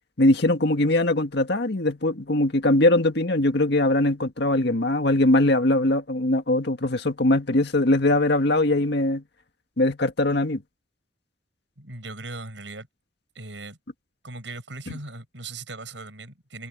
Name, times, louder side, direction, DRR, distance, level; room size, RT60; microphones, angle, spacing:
voice 1, 0.2-9.2 9.8-10.6, left 1 dB, 65° left, 1.8 m, -21 dB
voice 2, 11.8-12.9 13.3-13.8 14.2-16.7, right 2 dB, 80° right, 7.6 m, -38 dB
head